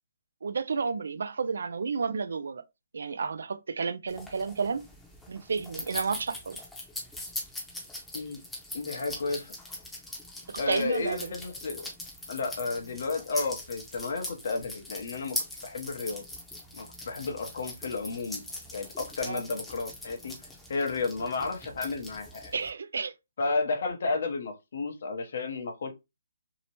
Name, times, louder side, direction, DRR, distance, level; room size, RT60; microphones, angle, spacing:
voice 1, 0.4-2.6 2.9-4.9 5.3-6.6 10.5-11.3 19.2-19.4 22.5-23.1, right 5 dB, 75° right, 0.3 m, -31 dB
sound 1, 4.1-22.7, left 1 dB, 5° left, 0.7 m, -41 dB
voice 2, 8.7-9.5 10.6-11.9 12.3-15.4 15.6-16.2 16.7-18.4 18.7-20.3 20.7-22.5 23.4-25.9, left 3 dB, 60° left, 0.7 m, -32 dB
2.8 x 2.1 x 2.8 m
hypercardioid pair, 155°, 0 cm